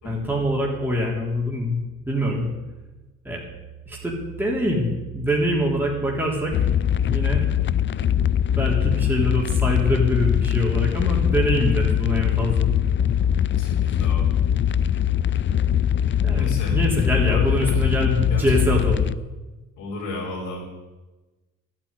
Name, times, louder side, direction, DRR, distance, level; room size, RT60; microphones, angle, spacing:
voice 1, 0.0-1.8 2.1-2.5 3.2-3.4 3.9-6.7 7.1-7.5 8.6-12.7 16.2-19.1, equal, 5° right, -3 dB, 3.7 m, -24 dB
sound 1, 6.5-19.2, left 9 dB, 40° left, 0.5 m, -22 dB
voice 2, 13.5-14.3 16.3-16.8 17.2-17.8 18.3-18.6 19.8-20.7, left 2 dB, 90° left, -5 dB, 4.1 m, -33 dB
12.5 x 9.0 x 10.0 m, 1.1 s
cardioid pair, 90°, 30 cm